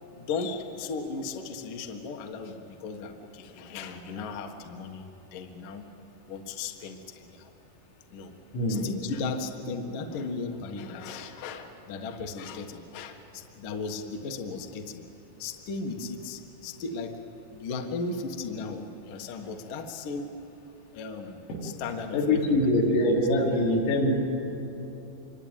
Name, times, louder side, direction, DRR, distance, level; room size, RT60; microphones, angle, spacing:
voice 1, 0.1-5.9 6.3-7.5 8.1-8.3 8.7-15.0 15.4-17.2 17.5-20.4 20.9-22.7 23.4-23.5, left 4 dB, 60° left, 4 dB, 2.4 m, -36 dB
voice 2, 22.1-24.1, left 1 dB, 85° left, -3 dB, 6.8 m, -23 dB
26.5 x 24.0 x 9.1 m, 2.9 s
omnidirectional pair, 5.8 m